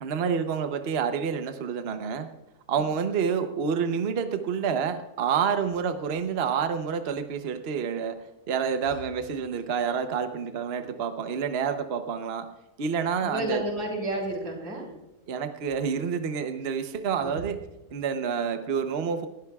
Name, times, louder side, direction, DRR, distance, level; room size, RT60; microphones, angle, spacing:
voice 1, 0.0-2.3 2.7-8.2 8.5-12.5 12.8-13.6 15.3-17.6 17.9-19.3, right 6 dB, 50° right, 8 dB, 0.9 m, -28 dB
voice 2, 13.2-14.9 17.1-17.4, right 1 dB, 85° right, 0 dB, 4.1 m, -32 dB
19.5 x 13.0 x 2.3 m, 1.0 s
omnidirectional pair, 1.7 m